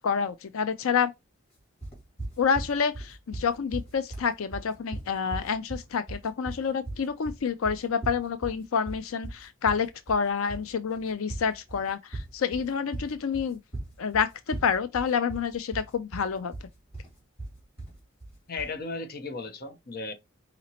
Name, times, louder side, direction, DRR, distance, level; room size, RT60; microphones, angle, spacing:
voice 1, 0.0-1.1 2.4-13.6 14.0-16.5, left 6 dB, 85° left, 0.5 m, -28 dB
sound 1, 1.8-18.8, right 2 dB, 30° left, 2.2 m, -39 dB
voice 2, 18.5-20.1, left 3 dB, 45° left, 0.8 m, -35 dB
4.9 x 2.9 x 2.8 m
head